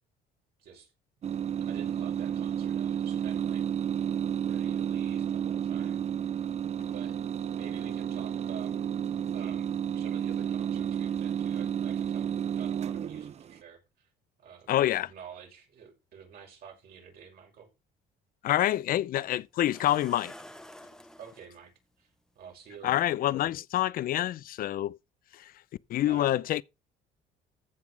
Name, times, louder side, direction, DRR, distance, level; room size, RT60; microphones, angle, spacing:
voice 1, 0.6-0.9 1.6-3.7 4.4-6.0 6.8-8.8 9.3-14.1 14.4-17.7 18.9-19.0 21.2-23.1 26.0-26.3, right 7 dB, 65° right, 6.3 m, -49 dB
sound 1, 1.2-13.6, right 9 dB, 40° right, 0.6 m, -31 dB
voice 2, 14.7-15.1 18.4-20.3 22.8-25.0 25.3-25.5 25.9-26.6, left 13 dB, 60° left, 0.6 m, -27 dB
sound 2, 18.5-18.6 19.7-21.5 22.7-22.8 23.3-23.5, left 1 dB, 5° left, 0.9 m, -49 dB
14.5 x 6.0 x 4.7 m
cardioid pair, 110°, 17 cm